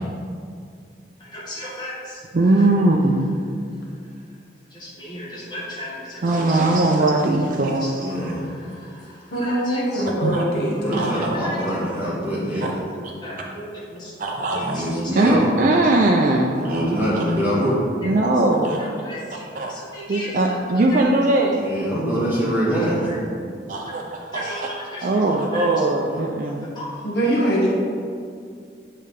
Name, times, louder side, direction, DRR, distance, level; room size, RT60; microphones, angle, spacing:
voice 1, 1.2-2.2 4.7-6.7 7.8-7.9 8.3-10.0 10.7-11.6 12.5-12.7 13.0-14.1 14.5-15.7 19.0-20.6 22.6-23.2 24.3-25.7 26.6-27.0, equal, 25° left, -6 dB, 1.6 m, -36 dB
voice 2, 2.3-3.3 6.2-8.1 10.2-10.4 10.9-11.4 12.6-12.7 14.2-14.9 15.2-16.9 17.1-17.2 18.0-18.9 19.5-19.7 20.1-21.6 23.7-24.6 25.0-26.7, right 2 dB, 45° right, 0 dB, 0.4 m, -20 dB
voice 3, 8.0-8.5 10.6-12.6 14.5-15.5 16.6-17.8 21.6-23.1 26.1-26.2, equal, 10° right, -8 dB, 1.4 m, -24 dB
voice 4, 9.3-11.4 27.0-27.7, right 1 dB, 60° left, -4 dB, 1.1 m, -23 dB
8.4 x 3.3 x 5.1 m, 2.3 s
head